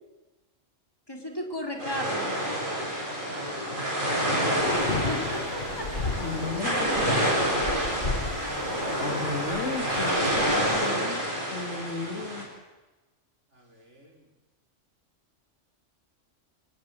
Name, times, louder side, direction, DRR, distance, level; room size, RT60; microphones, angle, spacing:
voice 1, 1.1-2.3 4.8-5.9, equal, 20° left, 2 dB, 4.0 m, -35 dB
sound 1, 1.8-12.4, equal, 40° right, 7.9 m, -28 dB
voice 2, 3.3-4.9 13.5-14.1, right 1 dB, 65° right, 0 dB, 5.5 m, -49 dB
sound 2, 4.5-10.9, left 3 dB, 50° left, 2.2 m, -36 dB
voice 3, 6.1-7.1 9.0-11.2 11.5-12.5, left 3 dB, 70° left, 5 dB, 3.1 m, -34 dB
25.5 x 20.5 x 7.8 m, 1.1 s
omnidirectional pair, 1.3 m